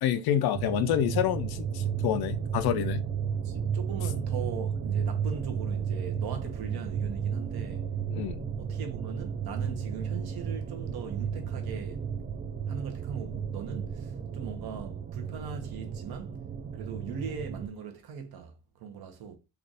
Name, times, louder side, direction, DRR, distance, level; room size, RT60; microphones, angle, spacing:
voice 1, 0.0-3.1 8.1-8.5, left 10 dB, 60° left, 0.5 m, -28 dB
sound 1, 0.5-17.7, right 7 dB, 25° right, 0.4 m, -33 dB
voice 2, 3.4-7.9 8.6-12.1 12.7-16.4 16.7-19.4, right 6 dB, 60° right, 1.0 m, -40 dB
3.3 x 2.4 x 4.0 m
cardioid pair, 135°, 43 cm